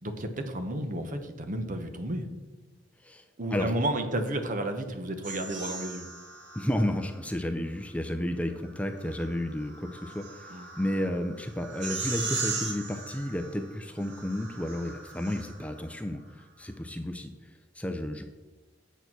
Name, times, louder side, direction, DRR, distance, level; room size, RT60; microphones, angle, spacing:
voice 1, 0.0-2.3 3.4-6.0 10.5-10.7, right 1 dB, 45° right, 7 dB, 1.0 m, -32 dB
sound 1, 5.2-7.2 8.6-15.8, right 4 dB, 65° right, 1.8 m, -39 dB
voice 2, 6.5-18.2, left 1 dB, 5° left, 6 dB, 0.5 m, -32 dB
8.2 x 6.7 x 6.0 m, 1.2 s
head